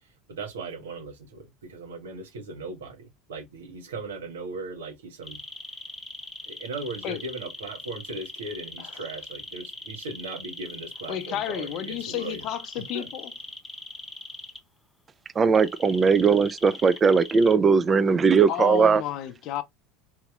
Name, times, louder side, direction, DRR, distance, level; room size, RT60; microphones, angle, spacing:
voice 1, 0.3-5.4 6.5-12.4 12.9-13.1, right 3 dB, 90° right, 1.1 m, -38 dB
sound 1, 5.2-14.6 15.5-17.6, left 2 dB, 10° left, 0.8 m, -40 dB
voice 2, 8.8-9.1 11.1-13.3 18.5-19.6, left 12 dB, 55° left, 0.6 m, -32 dB
voice 3, 15.4-19.0, right 5 dB, 30° right, 0.4 m, -19 dB
4.0 x 2.9 x 2.3 m
hypercardioid pair, 90°, 0 cm